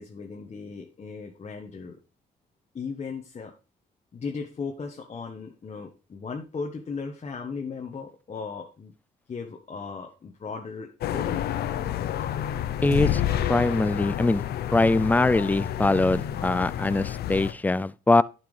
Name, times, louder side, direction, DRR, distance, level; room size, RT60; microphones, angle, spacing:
voice 1, 0.0-2.0 2.7-3.5 4.1-8.9 9.3-11.6, left 5 dB, 40° left, 1.2 m, -37 dB
sound 1, 11.0-17.5, left 11 dB, 75° left, 0.6 m, -29 dB
voice 2, 12.8-13.2 13.5-14.4 14.7-18.2, left 2 dB, 10° left, 0.3 m, -22 dB
10.5 x 5.9 x 3.3 m
supercardioid pair, 70°, 17 cm